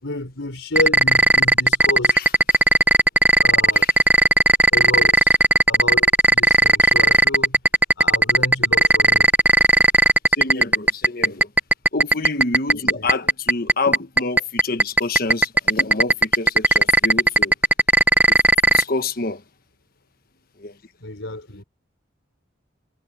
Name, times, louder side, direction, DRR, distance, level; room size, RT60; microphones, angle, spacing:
voice 1, 0.0-2.3 3.4-3.9 4.7-5.4 5.7-7.6 8.0-9.3 12.9-13.3 21.0-21.6, left 2 dB, 90° left, 4.5 m, -30 dB
sound 1, 0.8-18.8, right 2 dB, 10° right, 0.8 m, -13 dB
voice 2, 10.4-11.5 11.9-17.5 18.3-18.4 18.7-19.4 20.6-20.7, left 3 dB, 50° left, 1.3 m, -27 dB
head